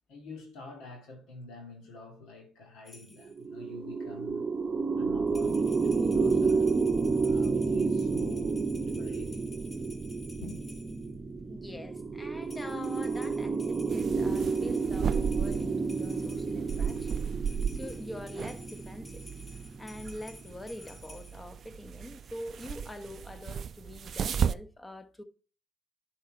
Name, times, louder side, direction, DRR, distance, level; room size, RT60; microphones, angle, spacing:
voice 1, 0.1-4.5 5.0-9.5 10.4-10.6, left 3 dB, 70° left, 2.1 m, -47 dB
sound 1, 2.8-3.4 5.3-11.1 12.4-21.4, left 2 dB, 35° left, 1.8 m, -53 dB
sound 2, 3.3-20.7, right 4 dB, 30° right, 0.8 m, -30 dB
voice 2, 11.4-17.2 17.5-19.3 19.8-25.2, left 1 dB, 15° left, 1.1 m, -44 dB
sound 3, 13.9-24.5, right 7 dB, 50° right, 0.4 m, -35 dB
10.5 x 4.4 x 4.5 m
hypercardioid pair, 55°, 0 cm